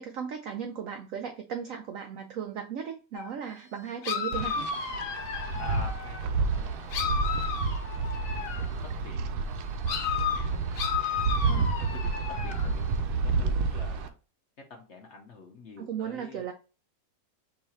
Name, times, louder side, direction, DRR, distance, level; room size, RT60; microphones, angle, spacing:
voice 1, 0.0-4.6 11.4-11.7 15.8-16.5, right 8 dB, 85° right, 6 dB, 0.7 m, -36 dB
sound 1, 3.1-3.3 4.0-6.3 6.9-8.8 9.9-12.8, left 7 dB, 70° left, 1.2 m, -33 dB
Wind, 4.3-14.1, right 4 dB, 70° right, 1.0 m, -30 dB
voice 2, 5.6-7.4 9.0-9.2 10.4-10.7 11.8-14.1 14.7-16.5, left 1 dB, 55° left, 2 dB, 0.8 m, -46 dB
4.7 x 2.5 x 4.3 m, 0.34 s
omnidirectional pair, 2.0 m